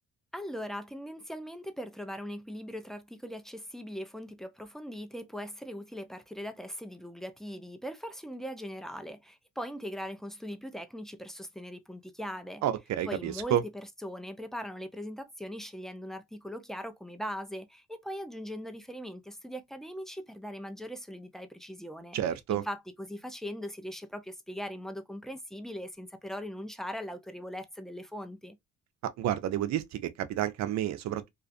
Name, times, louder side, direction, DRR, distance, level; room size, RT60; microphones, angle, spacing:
voice 1, 0.3-12.6 13.1-22.2 22.5-28.6, equal, ahead, 0.4 m, -40 dB
voice 2, 12.6-13.6 22.1-22.6 29.2-31.3, right 11 dB, 65° right, 0.5 m, -30 dB
2.4 x 2.4 x 2.3 m
cardioid pair, 90°, 30 cm